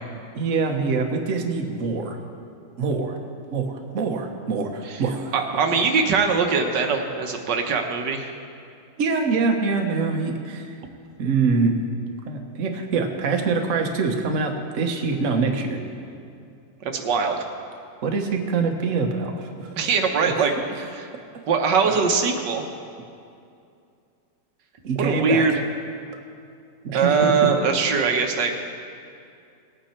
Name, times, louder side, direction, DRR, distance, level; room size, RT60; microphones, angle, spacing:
voice 1, 0.3-2.2 2.8-3.2 3.5-5.3 9.0-10.7 11.2-11.8 12.3-15.8 18.0-19.7 21.3-21.4 21.9-22.0 24.8-25.4 26.8-27.5, right 4 dB, 50° right, 3 dB, 1.3 m, -24 dB
voice 2, 5.3-8.3 16.8-17.4 19.8-21.1 21.5-22.6 25.0-25.6 26.9-28.6, right 5 dB, 85° right, 3 dB, 1.6 m, -22 dB
18.5 x 8.7 x 4.3 m, 2.5 s
omnidirectional pair, 1.8 m